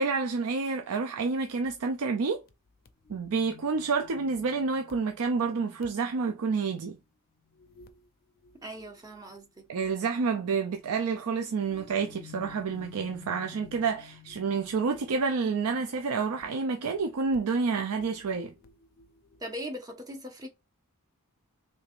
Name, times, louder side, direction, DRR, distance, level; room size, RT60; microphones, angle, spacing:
voice 1, 0.0-2.4 3.1-7.0 9.7-18.5, right 4 dB, 75° right, 0.5 m, -29 dB
sound 1, 1.6-1.8 2.5-2.6 2.9-7.0 7.4-8.1 8.4-10.1 11.5-19.4, left 7 dB, 45° left, 0.4 m, -54 dB
voice 2, 8.6-9.7 19.4-20.5, equal, 15° right, 0.7 m, -40 dB
3.3 x 3.3 x 2.4 m
head